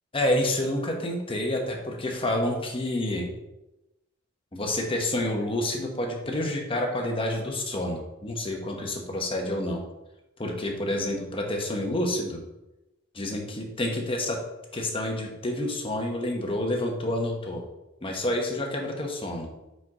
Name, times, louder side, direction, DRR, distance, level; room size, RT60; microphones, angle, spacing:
voice 1, 0.1-3.3 4.5-9.8 10.4-12.4 13.1-14.4 14.7-17.6 18.0-19.5, left 1 dB, 25° left, 1 dB, 1.0 m, -28 dB
5.0 x 4.6 x 4.8 m, 0.97 s
head